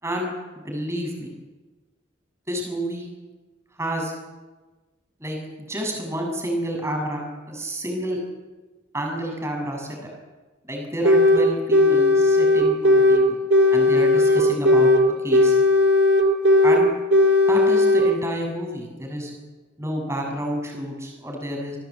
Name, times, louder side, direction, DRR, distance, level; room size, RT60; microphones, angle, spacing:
voice 1, 0.0-1.3 2.5-3.1 3.8-4.1 5.2-7.2 7.5-8.2 8.9-10.1 10.7-13.4 13.7-14.9 15.2-15.6 16.6-16.9 17.5-19.4 19.8-21.8, equal, 15° right, 1 dB, 7.4 m, -29 dB
sound 1, 11.1-11.4 11.7-13.2 13.5-15.0 15.3-16.8 17.1-18.1, left 2 dB, 65° right, 2.9 m, -16 dB
27.5 x 19.0 x 8.9 m, 1.2 s
head